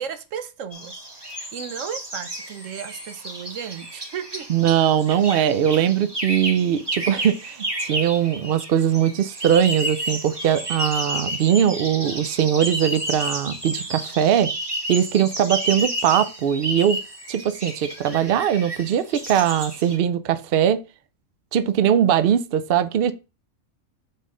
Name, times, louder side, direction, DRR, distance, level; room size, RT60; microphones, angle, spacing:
voice 1, 0.0-4.5, right 8 dB, 75° right, 1.1 m, -35 dB
sound 1, 0.7-20.0, right 1 dB, 20° right, 1.2 m, -31 dB
voice 2, 4.5-14.5 14.9-17.0 17.3-20.8 21.5-23.1, right 9 dB, 60° right, 0.7 m, -21 dB
7.2 x 4.2 x 3.7 m
omnidirectional pair, 1.3 m